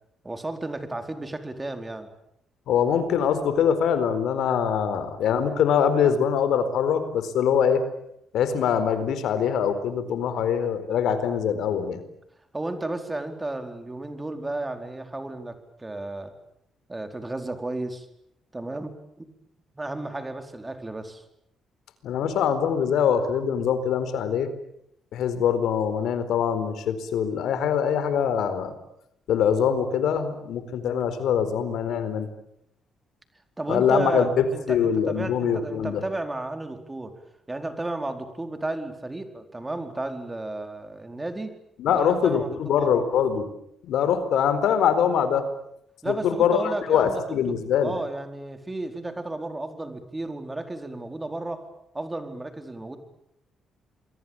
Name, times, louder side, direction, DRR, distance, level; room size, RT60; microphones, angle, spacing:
voice 1, 0.2-2.1 12.5-16.3 16.9-18.1 18.5-18.9 19.2-19.3 19.7-21.2 33.6-37.2 37.5-41.5 41.9-43.0 46.0-47.6 47.8-51.6 51.9-53.0, right 2 dB, 15° right, 7 dB, 4.5 m, -33 dB
voice 2, 2.7-7.8 8.3-12.0 22.0-24.5 25.1-28.7 29.3-32.3 33.7-36.0 41.8-43.4 43.8-45.4 46.1-47.9, left 8 dB, 80° left, 11 dB, 4.3 m, -23 dB
28.0 x 23.0 x 9.0 m, 0.77 s
cardioid pair, 90°, 0 cm